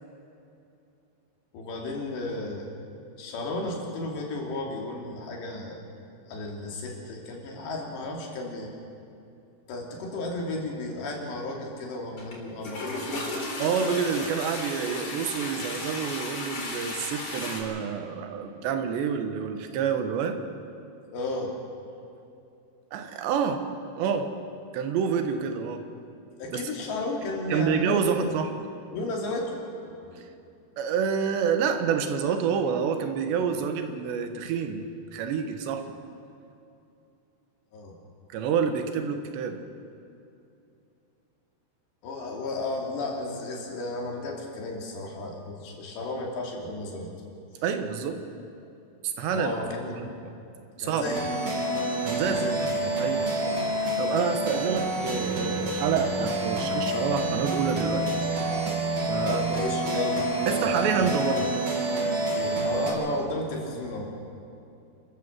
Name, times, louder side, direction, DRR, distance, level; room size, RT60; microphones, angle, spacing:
voice 1, 1.5-2.7 3.2-5.8 6.3-8.7 9.7-13.3 21.1-21.5 26.4-28.3 28.9-30.2 37.7-37.9 42.0-47.1 49.3-50.1 50.8-51.3 52.2-53.0 59.2-60.7 61.0-61.1 62.3-64.1, left 2 dB, 85° left, 0 dB, 5.1 m, -33 dB
Toilet flush, 12.2-12.3 12.6-17.6, left 2 dB, 50° left, 5.1 m, -34 dB
voice 2, 13.6-20.4 22.9-24.3 24.7-25.8 26.5-26.6 27.5-28.5 30.2-30.3 30.8-34.8 35.1-36.0 38.3-39.6 47.6-48.2 49.0-49.6 49.9-50.3 50.8-51.0 52.1-52.7 53.0-58.2 59.1-59.4 60.5-61.5, right 6 dB, 90° right, 7 dB, 3.6 m, -28 dB
sound 1, 51.0-62.9, right 1 dB, 35° right, 4.9 m, -28 dB
28.5 x 13.5 x 7.4 m, 2.7 s
omnidirectional pair, 4.9 m